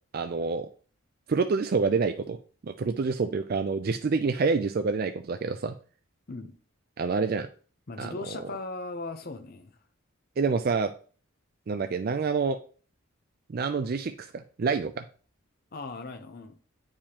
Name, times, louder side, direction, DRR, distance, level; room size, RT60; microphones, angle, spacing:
voice 1, 0.1-0.7 1.3-2.4 2.6-5.7 7.0-7.5 8.0-8.1 10.4-10.9 11.7-12.6 13.5-15.0, right 4 dB, 45° right, 0.4 m, -27 dB
voice 2, 7.9-9.8 15.7-16.6, left 3 dB, 45° left, 0.7 m, -38 dB
8.6 x 4.8 x 2.9 m
head